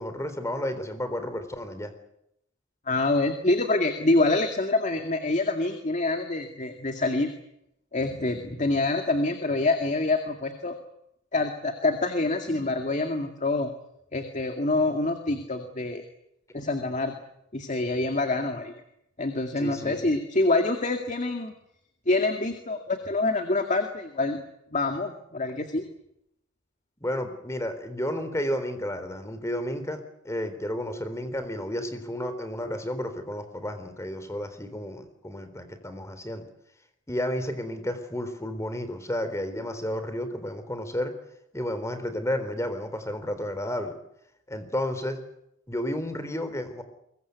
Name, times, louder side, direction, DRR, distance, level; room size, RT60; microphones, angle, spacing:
voice 1, 0.0-1.9 19.6-20.0 27.0-30.0 30.2-36.4 37.1-41.1 41.5-43.9 44.5-45.2 45.7-46.8, left 1 dB, 15° left, 9 dB, 3.7 m, -32 dB
voice 2, 2.9-7.3 7.9-10.7 11.3-13.7 14.1-16.0 16.5-17.1 17.5-18.7 19.2-21.5 22.1-24.4 24.7-25.8, left 2 dB, 40° left, 5 dB, 2.2 m, -26 dB
23.5 x 22.5 x 8.1 m, 0.78 s
head